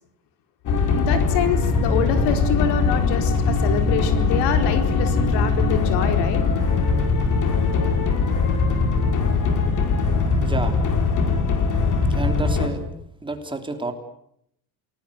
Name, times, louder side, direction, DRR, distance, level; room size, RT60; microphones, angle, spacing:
sound 1, 0.7-12.7, left 4 dB, 45° left, 5.0 m, -21 dB
voice 1, 0.9-6.4, left 8 dB, 75° left, 8 dB, 4.4 m, -26 dB
voice 2, 10.4-10.7 12.1-12.8 13.2-13.9, right 3 dB, 10° right, 6 dB, 3.3 m, -29 dB
29.0 x 19.5 x 8.3 m, 0.73 s
cardioid pair, 135°, 41 cm